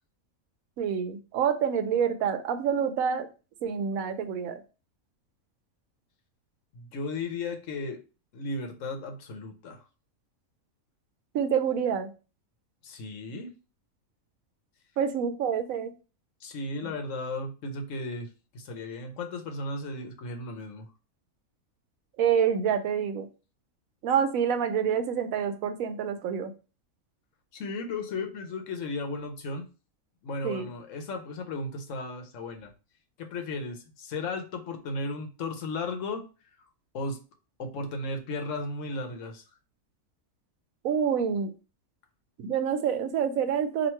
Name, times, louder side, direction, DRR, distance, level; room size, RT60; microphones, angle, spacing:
voice 1, 0.8-3.3 3.6-4.6 11.3-12.1 15.0-15.9 22.2-23.3 24.0-26.5 30.4-30.7 40.8-41.5 42.4-43.9, right 7 dB, 80° right, 9 dB, 1.0 m, -27 dB
voice 2, 6.7-8.0 8.3-9.8 12.8-13.5 16.4-20.9 27.5-29.7 30.2-32.7 33.2-36.3 36.9-37.2 37.6-39.4, left 2 dB, 70° left, 5 dB, 1.0 m, -35 dB
3.0 x 2.7 x 4.3 m, 0.33 s
omnidirectional pair, 1.4 m